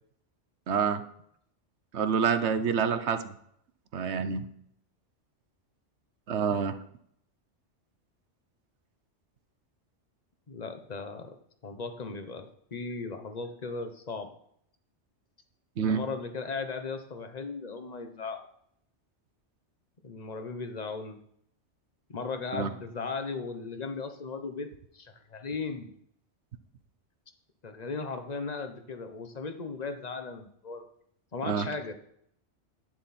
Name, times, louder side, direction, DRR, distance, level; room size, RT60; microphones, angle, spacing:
voice 1, 0.7-1.0 1.9-3.2 3.9-4.4 6.3-6.7 15.8-16.0 22.5-22.7 31.5-31.7, right 6 dB, 70° right, 11 dB, 1.1 m, -27 dB
voice 2, 10.5-11.3 11.6-14.3 15.8-18.5 20.0-21.2 22.1-25.9 27.6-30.9 31.3-31.9, left 4 dB, 35° left, 7 dB, 1.1 m, -37 dB
10.5 x 9.6 x 4.3 m, 0.68 s
omnidirectional pair, 1.2 m